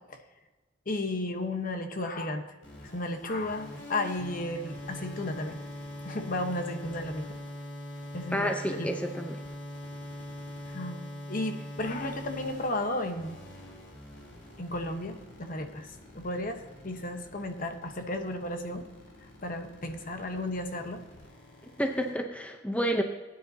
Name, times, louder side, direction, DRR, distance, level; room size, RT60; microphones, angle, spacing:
voice 1, 0.9-2.5 2.9-5.6 6.0-7.3 8.1-8.9 10.7-13.4 14.6-18.8 19.4-21.0, left 1 dB, 50° left, 6 dB, 1.1 m, -34 dB
sound 1, 2.6-22.1, left 1 dB, 85° left, 3.4 m, -43 dB
voice 2, 8.3-9.4 21.8-23.0, equal, 5° left, 4 dB, 0.7 m, -30 dB
19.0 x 9.5 x 2.8 m, 1.2 s
head